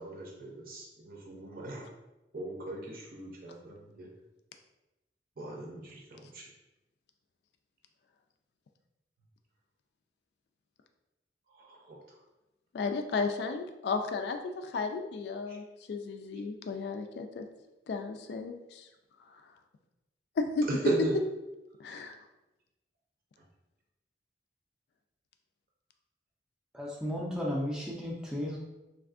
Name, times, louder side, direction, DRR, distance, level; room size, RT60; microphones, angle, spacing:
voice 1, 0.0-1.8 2.3-4.1 5.4-6.4 11.6-12.0 20.7-21.1, right 2 dB, 50° right, -2 dB, 0.6 m, -36 dB
voice 2, 12.7-17.5 17.9-18.8 20.4-20.7 21.8-22.1, left 4 dB, 70° left, 6 dB, 0.3 m, -34 dB
voice 3, 26.7-28.6, equal, 5° right, -4 dB, 0.4 m, -34 dB
3.4 x 2.4 x 2.4 m, 0.98 s
head